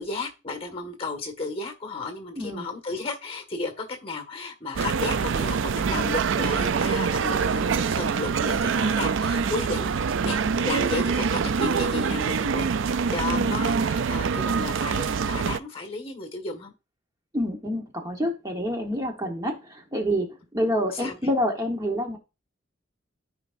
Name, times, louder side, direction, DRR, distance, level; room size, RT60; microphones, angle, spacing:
voice 1, 0.0-16.7 20.9-21.1, left 3 dB, 30° left, 6 dB, 1.8 m, -34 dB
voice 2, 2.4-2.7 13.3-13.7 17.3-22.2, equal, 20° right, 3 dB, 1.2 m, -28 dB
sound 1, 4.8-15.6, right 5 dB, 80° right, 0.4 m, -25 dB
13.5 x 5.0 x 2.6 m, 0.28 s
head